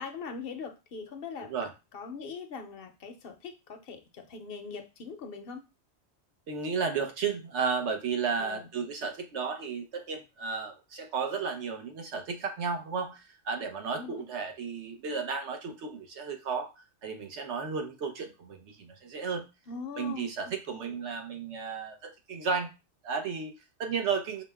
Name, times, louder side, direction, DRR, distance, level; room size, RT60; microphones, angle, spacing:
voice 1, 0.0-1.5 1.9-5.6 8.4-8.7 13.9-14.2 19.7-20.9, left 5 dB, 60° left, 6 dB, 0.8 m, -41 dB
voice 2, 1.4-1.7 6.5-19.5 20.0-22.7 23.0-24.4, right 5 dB, 75° right, 5 dB, 1.0 m, -33 dB
4.9 x 2.1 x 3.3 m, 0.27 s
omnidirectional pair, 1.2 m